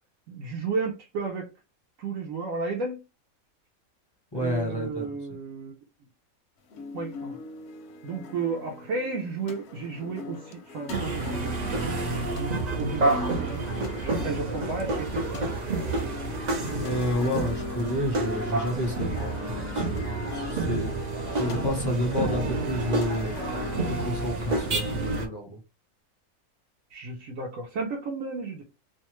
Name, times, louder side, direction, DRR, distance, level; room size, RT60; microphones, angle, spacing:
voice 1, 0.3-1.5 2.0-3.0 4.3-5.7 6.9-7.4 8.0-11.5 11.8-15.4 18.0-18.1 20.7-21.0 26.9-28.6, right 4 dB, 70° right, 1.1 m, -33 dB
voice 2, 4.3-5.2 16.8-23.4 23.9-25.6, left 1 dB, 30° left, 0.4 m, -30 dB
sound 1, 6.7-24.3, left 2 dB, 65° left, 0.7 m, -41 dB
sound 2, 10.9-25.3, right 2 dB, 45° right, 0.6 m, -29 dB
2.7 x 2.2 x 3.0 m
omnidirectional pair, 1.5 m